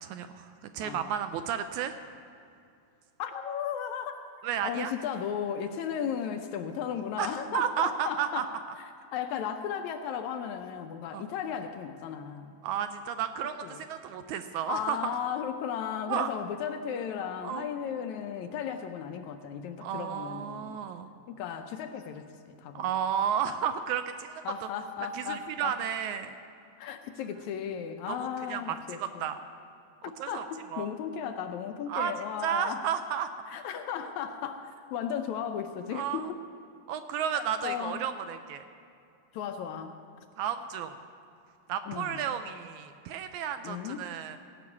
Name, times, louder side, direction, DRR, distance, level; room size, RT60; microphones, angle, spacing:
voice 1, 0.0-2.0 4.4-4.9 7.2-8.4 11.1-11.2 12.6-15.1 16.1-16.3 17.4-17.7 19.8-21.1 22.7-24.5 25.1-26.3 28.1-29.4 30.2-30.4 30.7-30.9 31.9-32.1 32.4-33.3 35.9-36.3 36.9-38.6 40.4-41.0 41.7-44.4, right 9 dB, 80° right, 9 dB, 1.8 m, -32 dB
voice 2, 0.8-1.1 3.2-4.2 4.6-12.5 13.6-13.8 14.7-20.9 21.3-22.9 24.5-25.8 26.8-29.3 30.0-32.8 33.5-36.3 37.3-38.0 39.3-40.0 41.9-42.2 43.6-44.1, left 8 dB, 75° left, 7 dB, 1.8 m, -35 dB
17.0 x 6.2 x 8.3 m, 2.5 s
omnidirectional pair, 3.6 m